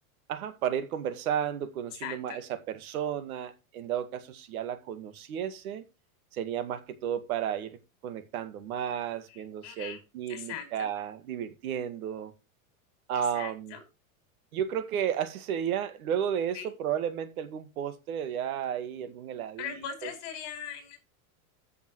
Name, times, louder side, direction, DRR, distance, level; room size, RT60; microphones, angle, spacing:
voice 1, 0.3-5.8 6.3-7.8 8.0-12.3 13.1-13.8 14.5-20.1, right 9 dB, 85° right, 1.9 m, -33 dB
voice 2, 2.0-2.4 9.3-10.0 10.3-10.9 13.1-13.8 16.5-16.7 19.6-21.0, left 8 dB, 40° left, 5.3 m, -40 dB
14.0 x 7.2 x 3.1 m
supercardioid pair, 170°, 42 cm